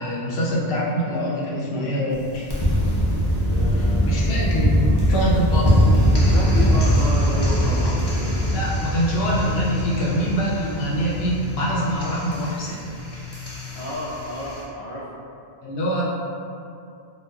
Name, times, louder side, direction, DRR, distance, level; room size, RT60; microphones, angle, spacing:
voice 1, 0.0-2.5 3.7-5.9 8.5-12.8 15.6-16.0, right 1 dB, 75° left, -6 dB, 0.9 m, -25 dB
sound 1, 2.1-14.6, equal, 35° left, 0.5 m, -22 dB
voice 2, 3.3-5.0 6.3-8.4 13.7-15.1, equal, 70° right, -11 dB, 0.8 m, -32 dB
4.0 x 2.3 x 2.2 m, 2.5 s
omnidirectional pair, 1.1 m